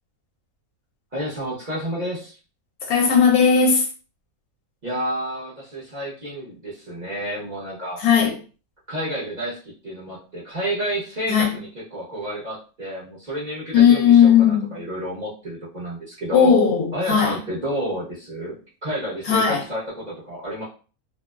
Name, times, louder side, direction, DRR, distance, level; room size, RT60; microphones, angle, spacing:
voice 1, 1.1-2.4 4.8-8.0 8.9-16.6 16.9-18.6 18.8-20.6, equal, 35° right, 0.8 m, -30 dB
voice 2, 2.9-3.9 8.0-8.3 11.3-11.6 13.7-14.7 16.3-17.4 19.3-19.6, left 7 dB, 80° left, 1.2 m, -16 dB
2.7 x 2.0 x 2.2 m
omnidirectional pair, 1.5 m